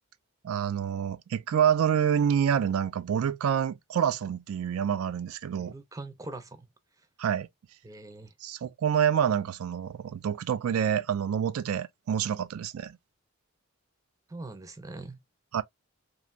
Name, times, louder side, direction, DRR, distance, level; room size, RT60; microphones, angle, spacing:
voice 1, 0.4-5.7 7.2-7.5 8.4-13.0 15.5-15.6, right 8 dB, 90° right, 0.3 m, -27 dB
voice 2, 5.6-6.7 7.8-8.3 14.3-15.2, right 2 dB, 15° right, 0.5 m, -42 dB
3.1 x 2.5 x 2.3 m
head